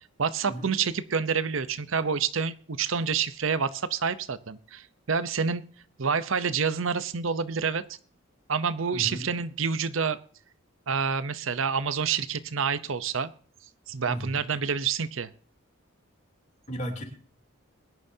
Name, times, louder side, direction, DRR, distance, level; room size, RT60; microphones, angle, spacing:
voice 1, 0.2-5.6 6.0-7.8 8.5-10.2 10.9-13.3 13.9-15.3, right 6 dB, 75° right, 14 dB, 0.8 m, -28 dB
voice 2, 8.9-9.3 14.1-14.4 16.7-17.0, equal, 35° left, 2 dB, 3.1 m, -35 dB
22.0 x 10.5 x 2.8 m, 0.43 s
head